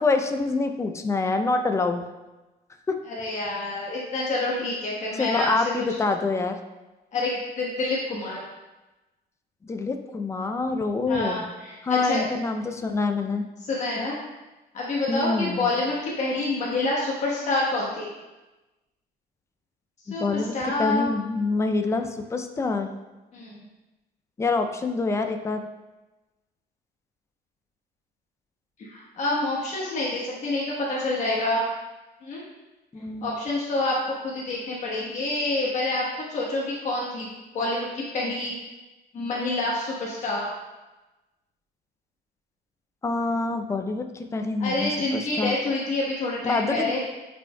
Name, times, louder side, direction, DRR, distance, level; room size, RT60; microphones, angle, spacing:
voice 1, 0.0-2.0 2.9-3.0 5.2-6.6 9.6-11.4 11.8-13.5 15.1-15.7 20.1-20.5 20.8-22.9 24.4-25.7 32.9-33.3 43.0-45.6 46.4-46.9, left 3 dB, 15° left, 6 dB, 0.4 m, -26 dB
voice 2, 3.1-5.6 7.1-8.4 11.1-12.2 13.6-14.2 14.7-18.1 20.1-21.1 23.3-23.6 28.8-31.6 32.2-32.4 33.2-34.0 34.2-37.3 37.5-37.9 38.1-38.5 39.1-40.5 44.6-47.0, left 2 dB, 45° left, -4 dB, 1.1 m, -27 dB
9.1 x 5.1 x 2.2 m, 1.1 s
cardioid pair, 165°, 17 cm